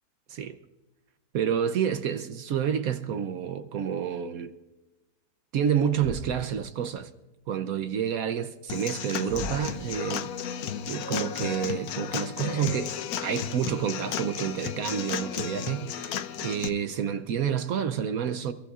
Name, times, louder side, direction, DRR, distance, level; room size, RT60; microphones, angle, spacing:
voice 1, 1.3-4.5 5.5-7.1 7.5-13.0 13.2-18.5, right 8 dB, 65° right, 1.1 m, -29 dB
Thump thud, 5.9-6.6 9.3-9.8, right 1 dB, 5° right, 4.8 m, -39 dB
Human voice / Acoustic guitar / Drum, 8.7-16.7, left 8 dB, 70° left, 1.1 m, -34 dB
29.5 x 14.0 x 2.4 m
omnidirectional pair, 1.7 m